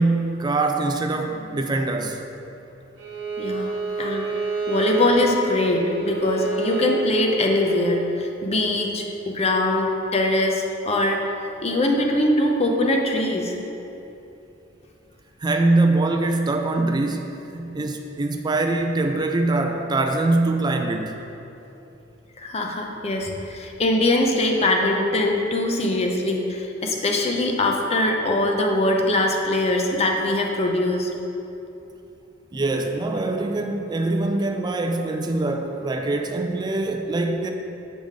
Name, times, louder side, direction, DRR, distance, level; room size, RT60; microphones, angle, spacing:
voice 1, 0.0-2.3 15.4-21.2 32.5-37.5, right 2 dB, 20° right, 4 dB, 0.3 m, -23 dB
Bowed string instrument, 3.0-8.0, right 3 dB, 65° right, 1.2 m, -28 dB
voice 2, 3.4-3.7 4.0-4.3 4.7-11.2 11.6-13.6 22.4-31.1, left 1 dB, 30° left, 1 dB, 0.6 m, -22 dB
7.6 x 5.0 x 3.7 m, 2.9 s
head